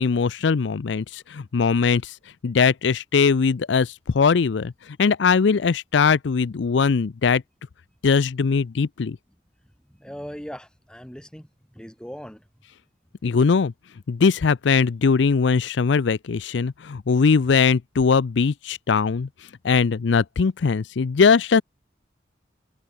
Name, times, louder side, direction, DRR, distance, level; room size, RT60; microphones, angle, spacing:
voice 1, 0.0-2.2 2.4-7.4 8.0-9.2 13.2-13.7 14.1-19.3 19.6-21.6, left 5 dB, 75° left, 0.5 m, -20 dB
voice 2, 9.9-12.4, equal, 5° left, 7.1 m, -39 dB
head